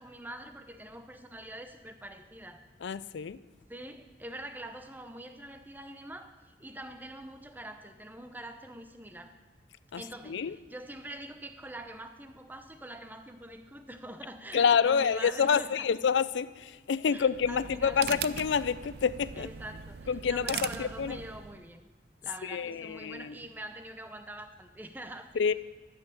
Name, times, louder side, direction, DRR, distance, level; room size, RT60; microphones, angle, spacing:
voice 1, 0.0-2.7 3.7-9.3 10.0-15.9 17.1-18.2 19.4-21.8 22.2-25.3, right 1 dB, 10° right, 8 dB, 0.7 m, -45 dB
voice 2, 2.8-3.4 9.9-10.6 14.5-19.5 20.1-21.2 22.4-23.3 25.3-25.5, left 6 dB, 80° left, 17 dB, 0.4 m, -28 dB
sound 1, 17.2-21.6, right 8 dB, 60° right, 0.4 m, -40 dB
12.0 x 7.7 x 6.9 m, 1.3 s
head